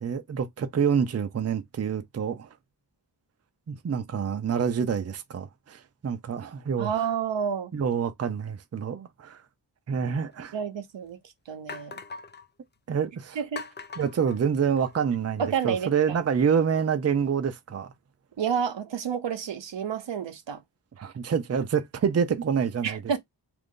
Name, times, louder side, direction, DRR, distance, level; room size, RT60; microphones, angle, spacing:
voice 1, 0.0-2.5 3.7-7.0 7.7-9.4 9.9-10.5 12.9-13.4 14.0-17.9 21.0-23.0, right 7 dB, 35° right, 0.5 m, -27 dB
voice 2, 6.8-7.7 10.5-11.2 11.5-12.0 13.4-13.6 15.4-16.2 18.4-20.6 22.8-23.2, right 7 dB, 85° right, 0.7 m, -30 dB
sound 1, 10.3-10.4 11.0-11.1 11.7-12.5 13.6-15.1, left 4 dB, 25° left, 0.3 m, -41 dB
2.9 x 2.5 x 3.6 m
wide cardioid pair, 100°, 43 cm